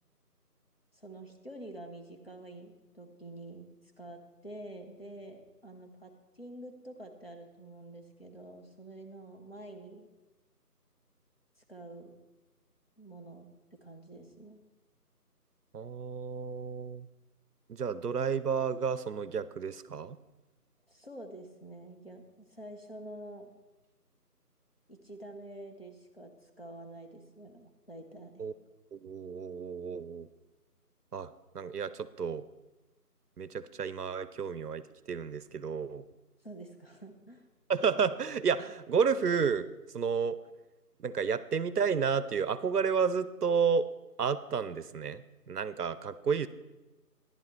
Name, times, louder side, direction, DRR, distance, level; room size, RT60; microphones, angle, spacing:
voice 1, 0.9-3.7 4.0-10.1 11.7-12.1 13.0-13.5 13.8-14.6 20.9-23.5 24.9-28.5 36.4-37.5, right 1 dB, 40° left, 3 dB, 0.9 m, -48 dB
voice 2, 15.7-17.1 17.7-20.2 28.4-28.5 28.9-30.3 31.1-32.4 33.4-36.1 37.7-39.7 39.9-40.4 41.0-43.9 44.2-46.5, right 6 dB, 70° right, 16 dB, 0.6 m, -31 dB
12.0 x 10.5 x 3.2 m, 1.1 s
figure-of-eight pair, 175°, 48 cm